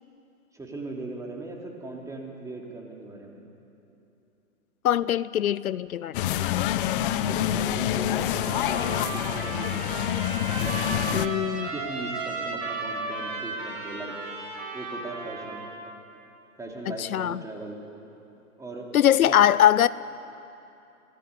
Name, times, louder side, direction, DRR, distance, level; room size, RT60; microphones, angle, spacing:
voice 1, 0.5-3.4 7.1-10.2 10.5-11.3 11.7-14.1 14.7-15.6 16.6-17.8 18.6-18.9 19.2-19.3, right 2 dB, 5° right, 0 dB, 3.2 m, -38 dB
voice 2, 4.8-6.3 11.1-11.7 16.9-17.4 18.9-19.9, left 11 dB, 75° left, 18 dB, 0.6 m, -22 dB
sound 1, 6.1-11.3, left 12 dB, 40° left, 1.0 m, -27 dB
Trumpet, 8.3-15.8, right 3 dB, 25° right, 6.3 m, -35 dB
26.5 x 18.0 x 9.7 m, 2.9 s
hypercardioid pair, 135°, 43 cm